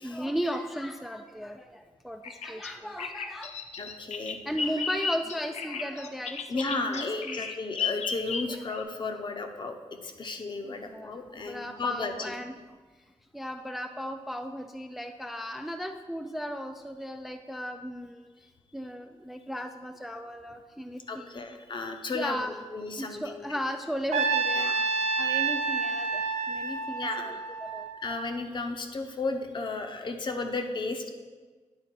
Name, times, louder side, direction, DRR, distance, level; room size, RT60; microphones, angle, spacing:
voice 1, 0.0-3.5 4.5-7.5 8.5-8.8 10.6-12.5 13.3-18.3 18.7-21.6 22.1-22.5 23.0-27.4 27.7-27.9, equal, ahead, 6 dB, 0.3 m, -36 dB
Bird vocalization bird call bird song, 2.2-8.8, left 5 dB, 75° left, 0.5 m, -34 dB
voice 2, 3.8-4.4 6.5-9.8 10.0-12.3 21.1-23.4 24.6-24.8 27.0-27.4 28.0-31.1, left 3 dB, 45° left, 5 dB, 0.7 m, -34 dB
Trumpet, 24.1-28.3, right 4 dB, 85° right, 0.6 m, -29 dB
9.6 x 4.0 x 4.5 m, 1.4 s
wide cardioid pair, 110°, 11 cm